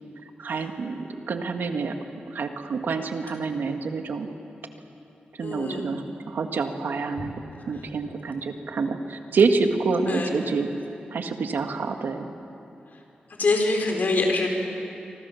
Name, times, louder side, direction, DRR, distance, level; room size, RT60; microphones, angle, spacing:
voice 1, 0.4-2.0 2.3-4.3 5.4-7.3 7.7-10.7 11.1-12.3, right 4 dB, 85° right, 5 dB, 1.7 m, -27 dB
voice 2, 5.4-5.8 7.2-7.3 10.1-10.3 13.4-14.5, left 3 dB, 60° left, 2 dB, 4.6 m, -24 dB
26.0 x 25.5 x 7.1 m, 2.8 s
wide cardioid pair, 100°, 3 cm